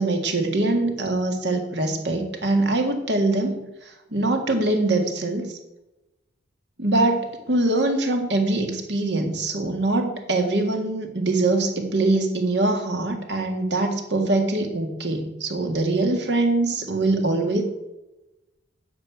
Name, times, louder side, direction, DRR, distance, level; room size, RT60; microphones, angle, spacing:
voice 1, 0.0-5.6 6.8-17.6, right 2 dB, 60° right, 4 dB, 1.9 m, -23 dB
9.5 x 6.5 x 8.4 m, 0.99 s
head